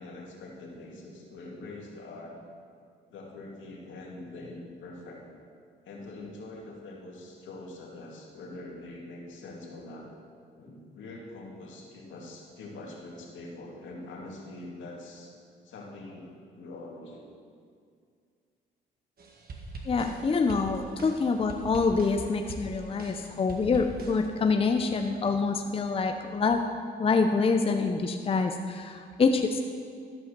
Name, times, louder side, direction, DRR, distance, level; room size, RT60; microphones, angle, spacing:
voice 1, 0.0-2.4 3.1-5.2 5.8-10.1 10.5-15.3 15.6-16.3 16.5-17.2, left 2 dB, 75° left, -2 dB, 2.2 m, -44 dB
sound 1, 19.2-24.3, right 2 dB, 50° right, 1.5 m, -42 dB
voice 2, 19.9-26.7 27.0-29.6, left 4 dB, 30° left, 5 dB, 0.6 m, -26 dB
13.0 x 5.6 x 6.7 m, 2.2 s
cardioid pair, 90°, 20 cm